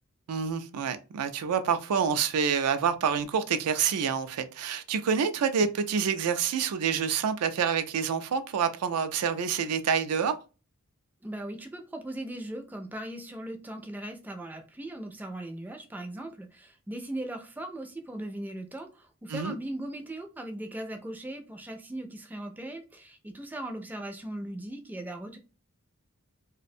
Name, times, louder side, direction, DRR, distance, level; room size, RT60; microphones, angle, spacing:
voice 1, 0.3-10.3 19.3-19.5, right 7 dB, 85° right, 0.4 m, -27 dB
voice 2, 11.2-25.4, right 1 dB, 10° right, 0.3 m, -39 dB
2.4 x 2.1 x 2.5 m
head